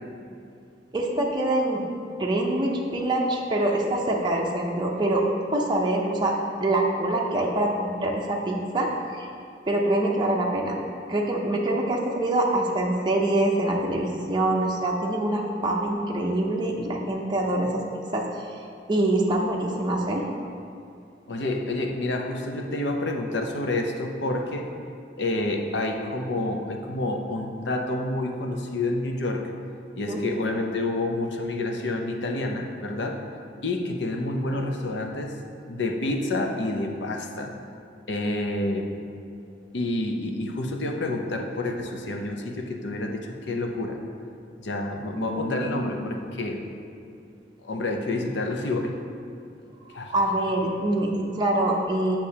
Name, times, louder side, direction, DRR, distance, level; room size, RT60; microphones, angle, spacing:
voice 1, 0.9-1.8 2.2-5.2 5.5-6.3 6.6-8.9 9.1-9.3 9.7-10.8 11.1-17.8 18.1-18.6 18.9-20.2 30.1-30.2 45.2-45.8 49.9-52.2, right 1 dB, 25° right, -2 dB, 0.6 m, -25 dB
voice 2, 21.3-24.7 25.2-29.5 30.0-33.2 33.6-35.4 35.7-37.5 38.1-39.0 39.7-44.0 44.6-46.6 47.6-49.0 49.9-50.1, left 2 dB, 70° left, 3 dB, 0.6 m, -28 dB
8.2 x 5.9 x 2.8 m, 2.5 s
head